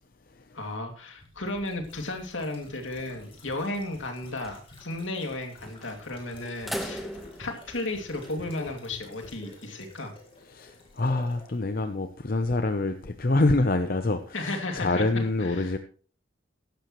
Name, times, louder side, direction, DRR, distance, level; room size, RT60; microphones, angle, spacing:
voice 1, 0.5-7.1 7.4-10.1 14.3-15.7, left 2 dB, 70° left, 2.5 m, -34 dB
sound 1, 1.2-11.6 11.8-11.9, left 1 dB, 25° left, 3.4 m, -49 dB
sound 2, 3.0-3.5 3.9-4.0 4.3-4.6 5.6-6.0 6.5-8.7, equal, ahead, 1.2 m, -40 dB
voice 2, 10.5-15.8, left 2 dB, 45° left, 0.7 m, -26 dB
15.0 x 11.5 x 3.1 m
head